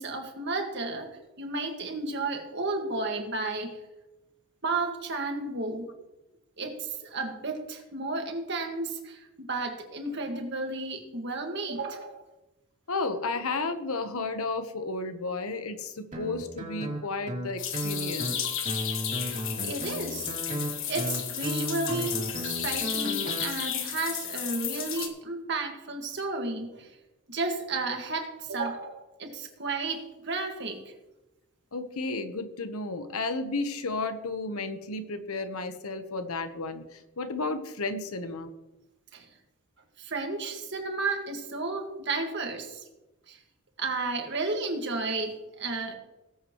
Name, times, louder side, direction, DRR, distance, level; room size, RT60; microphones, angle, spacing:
voice 1, 0.0-3.8 4.6-5.9 6.6-12.2 19.3-20.3 20.9-26.9 27.3-30.9 39.1-39.3 40.0-42.8 43.3-43.4 43.8-45.9, right 3 dB, 50° right, 3 dB, 1.8 m, -33 dB
voice 2, 12.9-18.4 31.7-38.5, left 3 dB, 75° left, 9 dB, 1.1 m, -33 dB
Guitar, 16.1-23.5, equal, 35° right, 2.8 m, -35 dB
sound 1, 17.6-25.1, left 9 dB, 60° left, 1.4 m, -33 dB
18.5 x 8.3 x 3.1 m, 1.0 s
head